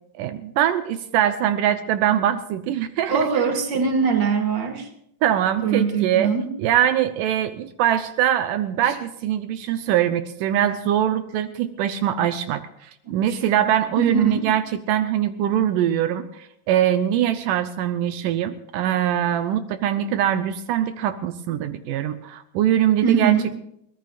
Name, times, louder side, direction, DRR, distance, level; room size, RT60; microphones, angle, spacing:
voice 1, 0.2-3.4 5.2-6.3 6.6-14.6 14.9-23.3, right 11 dB, 80° right, 10 dB, 2.3 m, -22 dB
voice 2, 3.1-4.9 5.6-6.5 13.3-13.4 14.0-14.4 23.0-23.4, right 6 dB, 35° right, 4 dB, 2.6 m, -22 dB
22.5 x 19.0 x 2.5 m, 0.73 s
omnidirectional pair, 3.7 m